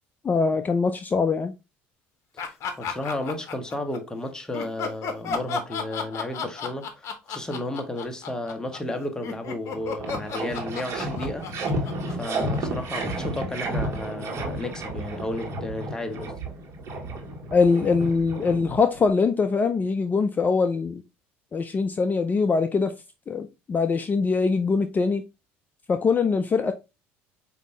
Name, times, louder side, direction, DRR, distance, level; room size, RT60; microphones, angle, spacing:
voice 1, 0.2-1.5 17.5-21.0 21.5-22.9 23.3-25.2 25.9-26.7, left 4 dB, 30° left, 0.4 m, -23 dB
voice 2, 2.3-16.4, left 1 dB, 10° left, 1.0 m, -33 dB
sound 1, 2.4-4.0 4.5-12.8, left 5 dB, 50° left, 0.8 m, -33 dB
sound 2, 9.3-9.4 9.7-19.1, right 1 dB, 50° right, 1.4 m, -32 dB
5.0 x 2.7 x 3.1 m
hypercardioid pair, 75°, 6 cm